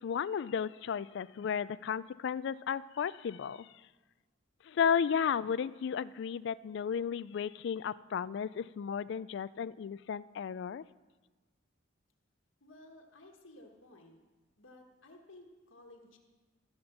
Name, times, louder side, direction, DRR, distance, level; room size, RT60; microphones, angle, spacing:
voice 1, 0.0-3.7 4.7-10.8, left 7 dB, 60° left, 18 dB, 0.3 m, -34 dB
voice 2, 12.6-14.2 14.6-16.2, left 1 dB, 85° left, 2 dB, 1.4 m, -55 dB
15.0 x 5.2 x 7.1 m, 1.3 s
head